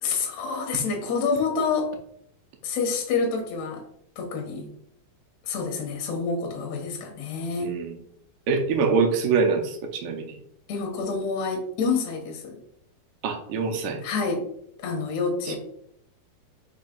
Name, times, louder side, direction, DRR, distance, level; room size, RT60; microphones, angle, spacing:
voice 1, 0.0-1.9 2.6-3.8 4.2-4.7 5.4-7.7 10.7-12.6 14.0-14.4 14.8-15.6, left 4 dB, 60° left, 2 dB, 2.1 m, -27 dB
voice 2, 7.6-7.9 8.5-10.4 13.2-14.0, right 5 dB, 75° right, 3 dB, 2.0 m, -24 dB
5.6 x 3.2 x 5.2 m, 0.70 s
omnidirectional pair, 4.5 m